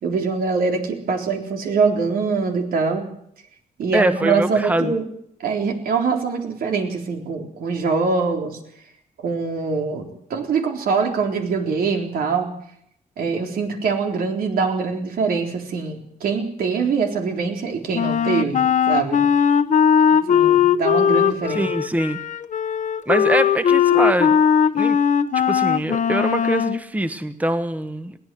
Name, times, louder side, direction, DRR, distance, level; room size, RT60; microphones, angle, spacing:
voice 1, 0.0-3.0 3.8-5.1 5.4-8.6 9.2-12.5 13.2-19.2 20.1-21.6, right 5 dB, 85° right, 3 dB, 3.7 m, -23 dB
voice 2, 3.9-4.9 21.5-22.2 23.1-24.4 24.7-25.0 25.5-28.2, right 1 dB, 10° right, 9 dB, 1.2 m, -23 dB
Wind instrument woodwind instrument, 17.9-26.8, left 8 dB, 60° left, 1.1 m, -18 dB
21.5 x 16.5 x 7.7 m, 0.72 s
cardioid pair, 120°, 15 cm